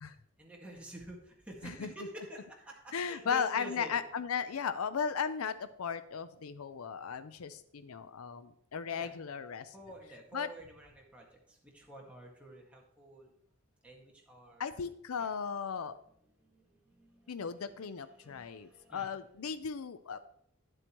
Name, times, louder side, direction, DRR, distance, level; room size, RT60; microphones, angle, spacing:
voice 1, 0.4-4.0 8.9-9.1 9.7-13.3 13.8-14.7 15.2-15.3 16.4-19.1 19.4-19.7, right 1 dB, 5° right, -3 dB, 1.8 m, -49 dB
voice 2, 2.9-9.7 10.3-10.5 14.6-16.0 17.3-20.3, left 6 dB, 90° left, 13 dB, 0.5 m, -36 dB
10.5 x 7.8 x 3.0 m, 0.70 s
head